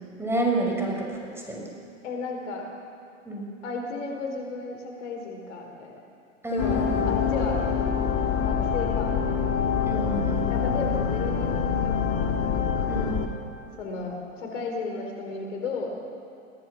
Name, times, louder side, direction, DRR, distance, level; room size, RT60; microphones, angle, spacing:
voice 1, 0.2-1.7 3.2-3.5 6.4-7.1 9.9-10.5 12.9-13.2, right 2 dB, 5° right, -1 dB, 5.8 m, -29 dB
voice 2, 2.0-2.6 3.6-6.0 6.5-6.8 7.1-7.6 8.4-9.4 10.5-11.9 12.3-12.4 13.8-16.0, left 3 dB, 70° left, 2 dB, 4.4 m, -34 dB
sound 1, 6.6-13.3, left 7 dB, 35° left, 2.3 m, -25 dB
23.0 x 17.0 x 7.1 m, 2.5 s
hypercardioid pair, 95°, 38 cm